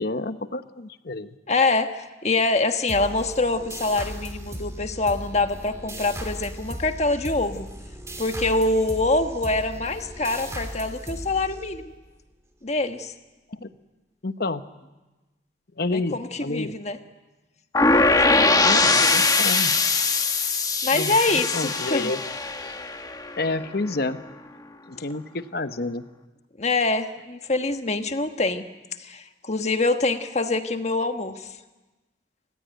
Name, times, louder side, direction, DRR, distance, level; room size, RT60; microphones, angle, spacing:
voice 1, 0.0-1.3 13.5-13.7 14.2-14.6 15.8-16.7 18.6-19.7 20.9-22.2 22.6-22.8 23.4-24.2 24.9-26.0, left 2 dB, 55° left, 11 dB, 1.0 m, -29 dB
voice 2, 1.5-7.7 8.2-11.9 12.6-13.1 15.9-17.0 17.9-19.1 20.8-22.1 26.6-28.7 29.0-31.5, left 3 dB, 40° left, 7 dB, 1.4 m, -25 dB
sound 1, 2.9-12.1, right 1 dB, 15° right, 2.9 m, -37 dB
sound 2, 17.7-23.6, left 3 dB, 20° left, 1.2 m, -21 dB
28.5 x 15.5 x 9.3 m, 1.1 s
head